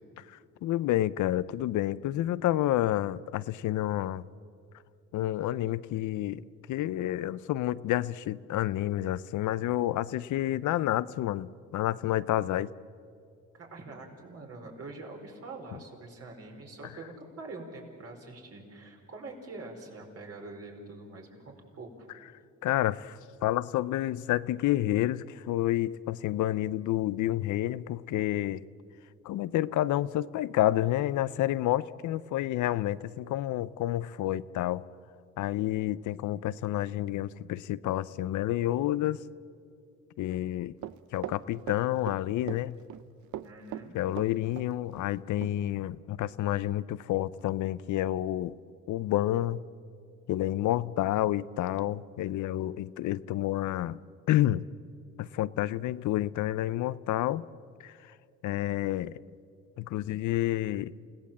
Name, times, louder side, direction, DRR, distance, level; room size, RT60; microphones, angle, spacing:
voice 1, 0.6-4.2 5.1-6.4 6.7-12.7 22.6-28.6 29.2-34.8 35.4-39.2 40.2-40.8 41.1-42.7 43.9-48.5 48.9-49.6 50.3-54.0 54.3-54.6 55.2-57.4 57.8-57.9 58.4-59.1 59.8-60.9, left 14 dB, 75° left, 17 dB, 0.6 m, -29 dB
voice 2, 13.5-22.1 43.4-44.0, right 2 dB, 55° right, 1 dB, 4.7 m, -45 dB
Run, 40.8-42.2 42.5-43.0 43.3-44.7 45.0-45.1 45.4-45.5, right 12 dB, 70° right, 0.7 m, -39 dB
29.0 x 17.0 x 7.4 m, 2.4 s
cardioid pair, 90°, 30 cm